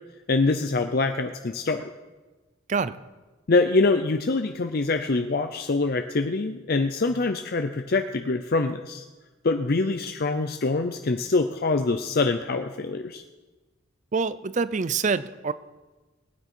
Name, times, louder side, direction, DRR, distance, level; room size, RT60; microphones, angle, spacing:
voice 1, 0.3-1.9 3.5-9.0 9.4-13.2, left 3 dB, 50° left, 7 dB, 0.5 m, -24 dB
voice 2, 14.1-15.5, right 5 dB, 35° right, 16 dB, 0.4 m, -26 dB
20.0 x 9.5 x 4.5 m, 1.2 s
head